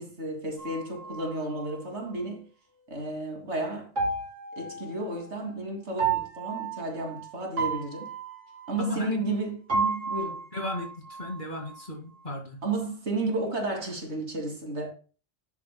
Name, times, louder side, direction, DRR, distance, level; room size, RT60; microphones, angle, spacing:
voice 1, 0.0-2.5 2.9-3.9 4.6-8.1 8.7-10.5 12.6-14.9, right 2 dB, 65° right, 2.8 m, -32 dB
sound 1, 0.6-2.3 3.9-5.6 5.9-9.4 9.7-11.8, right 5 dB, 85° right, 3.1 m, -33 dB
voice 2, 8.8-9.3 10.5-10.9 11.2-12.6, left 1 dB, 40° left, 2.4 m, -34 dB
10.5 x 8.5 x 2.2 m
omnidirectional pair, 1.2 m